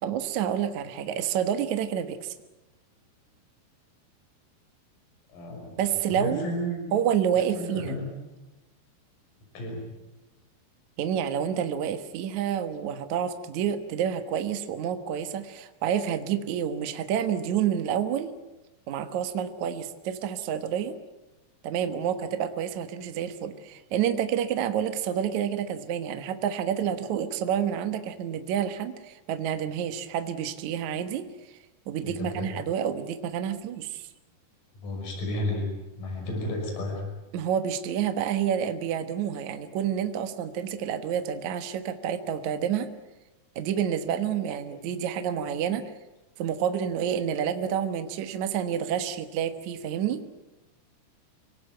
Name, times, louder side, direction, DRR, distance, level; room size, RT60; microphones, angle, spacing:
voice 1, 0.0-2.3 5.8-6.5 6.9-8.0 11.0-18.3 18.9-21.0 21.6-31.3 31.9-34.1 37.3-42.9 43.6-45.8 46.4-50.2, right 9 dB, 60° right, 8 dB, 2.1 m, -29 dB
voice 2, 5.3-5.8 6.1-6.9 7.6-8.1 9.5-9.9 32.0-32.5 34.8-35.7 36.0-37.0, left 1 dB, 50° left, 1 dB, 7.3 m, -32 dB
25.5 x 18.5 x 9.3 m, 1.1 s
omnidirectional pair, 4.8 m